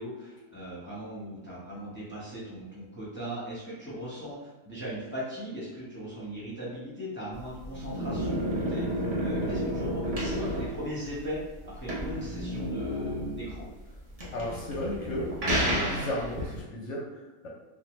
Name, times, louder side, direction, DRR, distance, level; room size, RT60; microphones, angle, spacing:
voice 1, 0.0-13.7, equal, 15° left, -8 dB, 0.4 m, -38 dB
sound 1, 7.3-16.6, equal, 65° right, 0.3 m, -31 dB
voice 2, 14.3-15.3 15.7-17.5, left 1 dB, 65° left, -2 dB, 0.7 m, -34 dB
3.5 x 2.1 x 3.0 m, 1.1 s
omnidirectional pair, 1.8 m